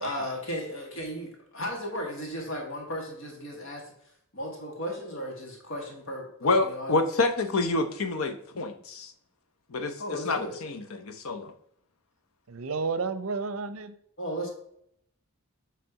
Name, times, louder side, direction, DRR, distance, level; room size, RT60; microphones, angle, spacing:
voice 1, 0.0-3.8 4.3-6.9 10.0-10.6 14.2-14.5, equal, 60° left, 0 dB, 1.6 m, -35 dB
voice 2, 6.4-9.1 9.7-11.5, left 3 dB, 75° left, 8 dB, 0.8 m, -28 dB
voice 3, 12.5-13.9, right 4 dB, 70° right, 13 dB, 0.6 m, -31 dB
7.8 x 3.4 x 4.7 m, 0.69 s
head